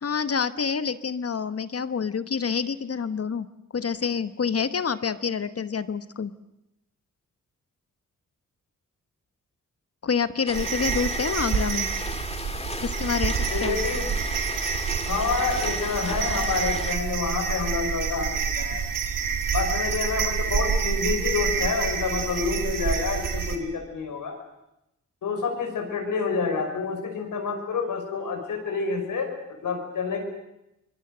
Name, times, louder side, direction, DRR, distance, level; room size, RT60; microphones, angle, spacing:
voice 1, 0.0-3.5 3.7-6.3 10.0-11.9 12.8-13.8, left 6 dB, 50° left, 13 dB, 1.1 m, -27 dB
sound 1, 10.5-17.0, left 2 dB, 20° left, 1.9 m, -35 dB
sound 2, 10.5-23.6, right 6 dB, 85° right, 2.4 m, -28 dB
voice 2, 13.5-14.1 15.1-18.8 19.5-24.3 25.2-30.2, left 5 dB, 80° left, 3 dB, 5.9 m, -28 dB
25.0 x 21.0 x 7.9 m, 0.88 s
cardioid pair, 55°, 32 cm